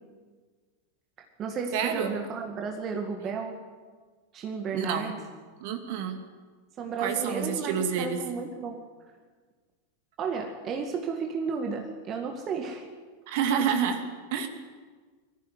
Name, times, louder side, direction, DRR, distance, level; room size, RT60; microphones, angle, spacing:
voice 1, 1.2-3.6 4.3-5.2 6.8-8.8 10.2-12.9 13.5-13.6, right 5 dB, 30° right, 4 dB, 2.1 m, -33 dB
voice 2, 1.7-2.1 4.7-5.1 5.6-6.2 7.0-8.2 13.3-14.0 14.3-14.5, right 7 dB, 50° right, 6 dB, 2.5 m, -28 dB
22.0 x 15.0 x 9.5 m, 1.5 s
figure-of-eight pair, 90°, 0 cm